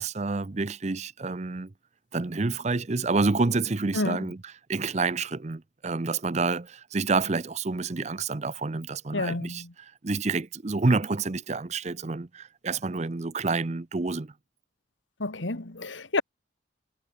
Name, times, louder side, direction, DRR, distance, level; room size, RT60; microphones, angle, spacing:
voice 1, 0.0-1.7 2.1-14.3, right 3 dB, 35° right, 0.6 m, -28 dB
voice 2, 9.1-9.7 15.2-16.2, left 2 dB, 80° left, 2.1 m, -29 dB
head